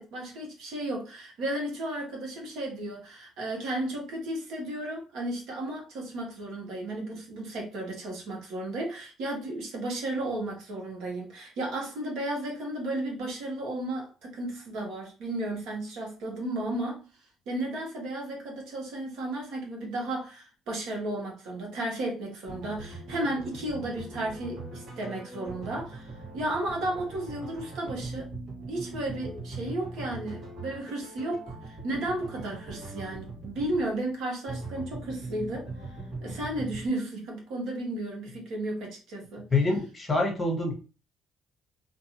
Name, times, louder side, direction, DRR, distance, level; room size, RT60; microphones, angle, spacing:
voice 1, 0.0-17.0 17.5-28.3 28.7-35.7 36.2-39.5, right 1 dB, 75° right, 1.1 m, -34 dB
sound 1, 22.5-36.9, right 2 dB, 55° right, 1.3 m, -41 dB
voice 2, 39.5-40.7, left 3 dB, 20° left, 0.9 m, -26 dB
2.5 x 2.5 x 2.8 m
cardioid pair, 95°, 0 cm